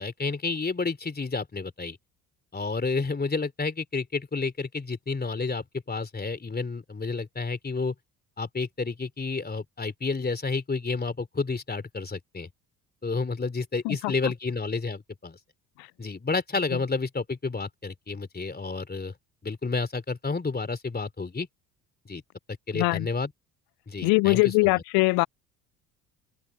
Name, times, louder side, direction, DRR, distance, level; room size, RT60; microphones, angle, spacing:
voice 1, 0.0-2.0 2.5-7.9 8.4-12.5 13.0-15.4 16.0-19.1 19.4-21.5 22.0-22.2 22.7-23.3 23.9-24.8, left 4 dB, 20° left, 3.3 m, -30 dB
voice 2, 13.8-14.3 22.7-23.1 24.0-25.3, left 27 dB, 55° left, 0.5 m, -22 dB
hypercardioid pair, 60°, 44 cm